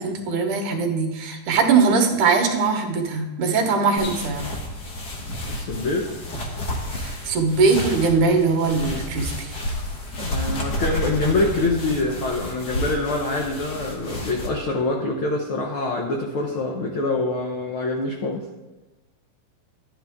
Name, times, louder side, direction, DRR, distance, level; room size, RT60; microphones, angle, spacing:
voice 1, 0.0-4.5 6.9-9.6, right 4 dB, 70° right, 3 dB, 2.6 m, -21 dB
sound 1, 4.0-14.5, left 1 dB, 45° left, 1.3 m, -31 dB
voice 2, 5.5-6.1 10.1-18.4, left 2 dB, 70° left, 0 dB, 1.3 m, -25 dB
12.0 x 9.5 x 3.6 m, 1.1 s
omnidirectional pair, 3.8 m